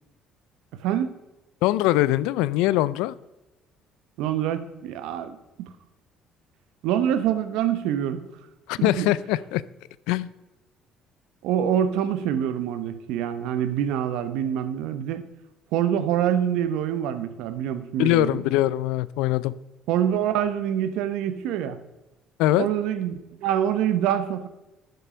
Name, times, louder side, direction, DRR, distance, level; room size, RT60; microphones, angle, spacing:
voice 1, 0.8-1.1 4.2-5.7 6.8-8.2 8.8-9.1 11.4-15.2 15.7-18.4 19.9-21.8 22.6-24.5, right 10 dB, 80° right, 11 dB, 0.9 m, -25 dB
voice 2, 1.6-3.1 8.7-9.6 10.1-10.3 18.0-19.5 22.4-22.7, left 15 dB, 85° left, 19 dB, 0.4 m, -22 dB
11.0 x 6.7 x 5.1 m, 1.0 s
supercardioid pair, 90°, 0 cm